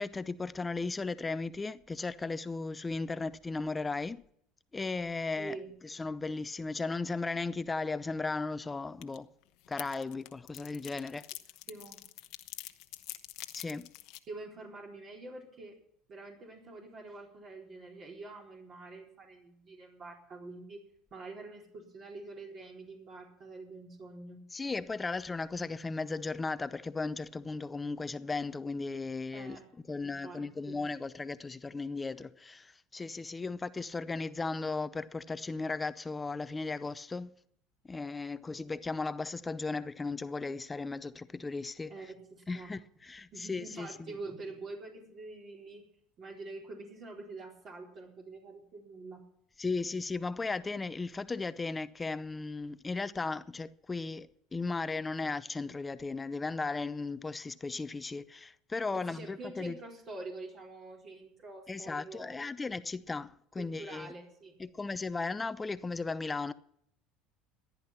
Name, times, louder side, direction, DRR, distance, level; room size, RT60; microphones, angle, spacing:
voice 1, 0.0-4.2 4.7-5.6 5.8-9.3 9.7-11.3 13.5-13.9 24.5-29.6 29.9-37.3 37.8-41.9 42.5-43.9 49.6-59.8 61.7-64.1 64.6-66.5, left 3 dB, 20° left, 0.6 m, -36 dB
voice 2, 5.4-5.7 11.7-12.0 14.3-15.7 16.1-20.8 21.1-24.4 29.3-29.6 30.0-30.4 30.7-30.8 41.9-42.7 43.3-45.8 46.2-49.2 58.9-62.4 63.6-64.5, right 3 dB, 45° right, 4.1 m, -46 dB
sound 1, 9.0-9.2 9.4-14.2, left 18 dB, 70° left, 1.0 m, -45 dB
14.5 x 10.5 x 5.9 m
supercardioid pair, 95°, 0 cm